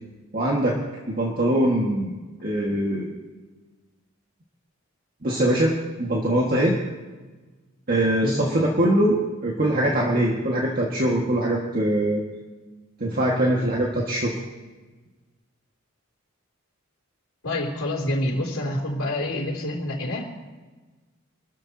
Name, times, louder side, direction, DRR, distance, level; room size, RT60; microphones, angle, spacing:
voice 1, 0.3-0.8 1.1-2.1 2.4-3.1 5.2-6.8 7.9-12.2 13.0-14.3, right 1 dB, 40° right, -3 dB, 1.9 m, -22 dB
voice 2, 17.4-20.3, left 1 dB, 80° left, -2 dB, 3.2 m, -27 dB
26.0 x 14.0 x 2.9 m, 1.3 s
head